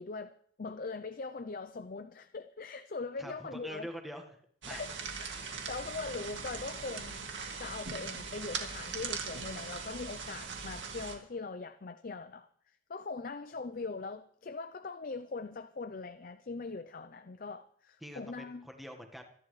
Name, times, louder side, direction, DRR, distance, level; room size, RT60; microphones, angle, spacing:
voice 1, 0.0-3.9 4.7-7.3 7.6-12.5 12.9-18.7, left 4 dB, 45° left, 0.5 m, -41 dB
voice 2, 3.2-4.2 4.7-4.8 18.0-19.2, equal, ahead, 1.4 m, -44 dB
sound 1, 4.6-11.1, right 5 dB, 65° right, 2.3 m, -40 dB
26.0 x 11.0 x 3.2 m
head